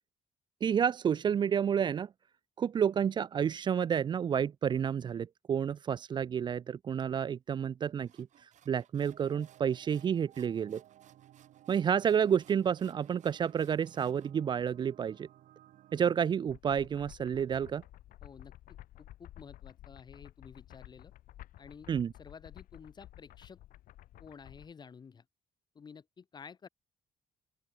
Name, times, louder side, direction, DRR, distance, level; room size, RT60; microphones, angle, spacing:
voice 1, 0.6-2.1 2.6-10.8 11.7-15.3 15.9-17.8 21.9-22.1, right 8 dB, 35° right, 0.4 m, -30 dB
sound 1, 8.0-14.3, right 10 dB, 60° right, 7.7 m, -64 dB
sound 2, 9.0-16.3, right 13 dB, 85° right, 2.0 m, -59 dB
sound 3, 16.5-24.7, left 14 dB, 90° left, 0.9 m, -53 dB
voice 2, 18.2-18.5 19.0-21.1 21.6-21.9 22.1-23.6 24.2-25.2 25.8-26.7, left 6 dB, 30° left, 2.1 m, -52 dB
open air
cardioid pair, 170°, 14 cm